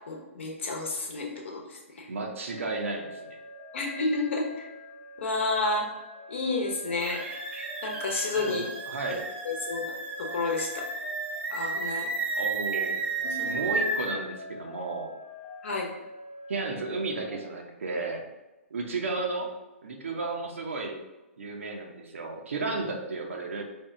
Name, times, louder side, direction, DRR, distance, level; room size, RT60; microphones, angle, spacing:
voice 1, 0.1-2.1 3.7-4.7 5.2-5.9 6.3-7.2 7.8-8.6 9.1-9.2 9.4-9.9 10.2-10.7 11.5-12.1 13.2-13.5 15.6-15.9, left 3 dB, 60° left, 1 dB, 0.9 m, -30 dB
voice 2, 2.1-3.4 8.5-9.2 12.3-13.0 13.4-15.1 16.5-18.2 18.7-19.5 19.8-21.0 21.4-23.6, right 3 dB, 70° right, 1 dB, 0.7 m, -33 dB
sound 1, 2.5-17.4, equal, 20° left, 1.0 m, -45 dB
sound 2, 7.0-14.1, right 3 dB, 15° right, 0.6 m, -33 dB
4.4 x 2.3 x 3.5 m, 1.1 s
figure-of-eight pair, 120°, 7 cm